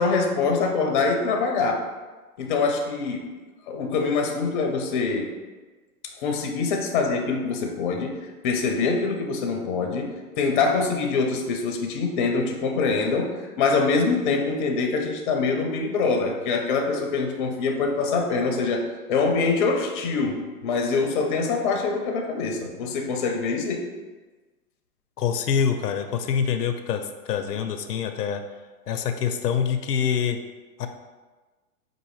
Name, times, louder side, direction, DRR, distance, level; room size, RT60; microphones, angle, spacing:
voice 1, 0.0-1.9 2.4-3.2 3.7-5.3 6.2-23.9, left 4 dB, 35° left, 3 dB, 0.5 m, -24 dB
voice 2, 25.2-28.4 28.9-30.4 30.8-30.9, left 7 dB, 85° left, 7 dB, 0.5 m, -25 dB
4.7 x 2.5 x 3.1 m, 1.3 s
hypercardioid pair, 120°, 46 cm